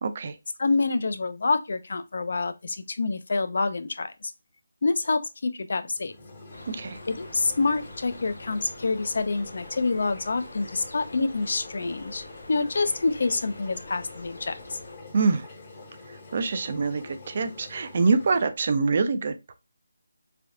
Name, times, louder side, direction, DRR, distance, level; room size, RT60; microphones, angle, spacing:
voice 1, 0.0-0.4 6.7-7.0 15.1-15.5 16.1-19.5, right 4 dB, 35° right, 0.3 m, -25 dB
voice 2, 0.6-4.3 4.8-6.1 7.1-14.8, left 3 dB, 55° left, 0.4 m, -27 dB
sound 1, 6.0-18.5, left 3 dB, 25° left, 0.7 m, -46 dB
sound 2, 6.5-15.0, left 1 dB, 85° left, 0.7 m, -46 dB
3.3 x 2.3 x 2.5 m
figure-of-eight pair, 170°, 0 cm